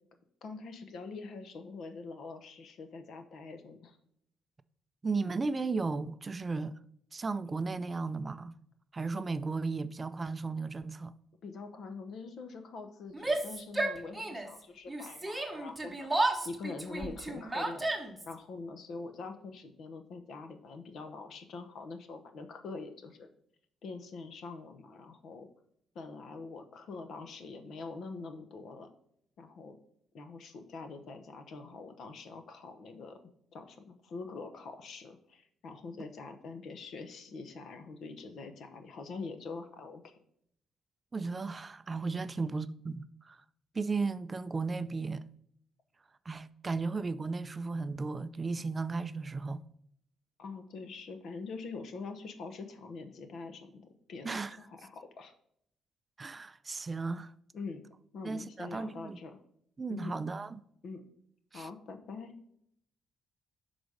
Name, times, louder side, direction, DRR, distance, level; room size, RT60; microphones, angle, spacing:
voice 1, 0.4-4.0 11.4-17.9 18.2-23.3 23.8-25.5 25.9-28.9 29.4-29.8 30.1-33.2 33.5-40.2 50.4-55.3 57.5-57.8 58.1-59.3 59.9-60.1 60.8-61.0 61.5-62.3, left 4 dB, 70° left, 0.9 m, -44 dB
voice 2, 5.0-6.8 7.1-8.6 8.9-11.1 41.1-43.4 43.7-45.3 46.3-49.6 54.2-54.6 56.2-57.3 58.2-59.2 59.8-60.6 61.5-61.7, right 4 dB, 30° right, 0.3 m, -35 dB
Yell, 13.1-14.6 14.9-18.3, right 2 dB, 10° right, 0.9 m, -33 dB
6.2 x 4.0 x 4.9 m
cardioid pair, 90°, 0 cm